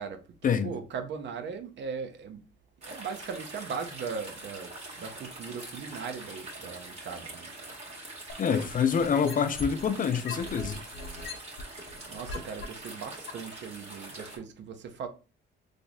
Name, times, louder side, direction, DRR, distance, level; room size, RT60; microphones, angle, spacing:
voice 1, 0.0-2.4 2.8-7.8 11.8-15.1, right 6 dB, 65° right, 0.7 m, -39 dB
sound 1, 2.8-14.4, right 2 dB, 30° right, 1.6 m, -44 dB
sound 2, 8.3-9.9 10.3-12.7 13.3-13.4, left 4 dB, 80° left, 0.8 m, -38 dB
voice 2, 8.4-10.8, left 7 dB, 45° left, 0.5 m, -26 dB
4.0 x 3.2 x 2.3 m
cardioid pair, 90°, 20 cm